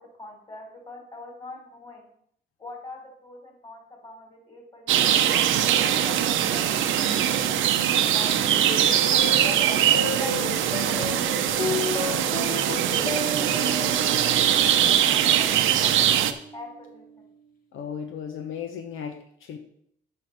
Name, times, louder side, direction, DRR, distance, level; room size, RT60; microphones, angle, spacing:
voice 1, 0.0-2.0 2.6-8.6 9.1-15.5 15.8-16.1 16.5-17.1, left 2 dB, 25° left, 2 dB, 3.5 m, -44 dB
sound 1, 4.9-16.3, right 10 dB, 80° right, 0.7 m, -22 dB
sound 2, 8.7-17.3, left 3 dB, 45° left, 1.6 m, -33 dB
voice 2, 17.7-19.6, left 7 dB, 85° left, 5 dB, 1.0 m, -35 dB
7.8 x 6.1 x 5.8 m, 0.68 s
cardioid pair, 90°, 20 cm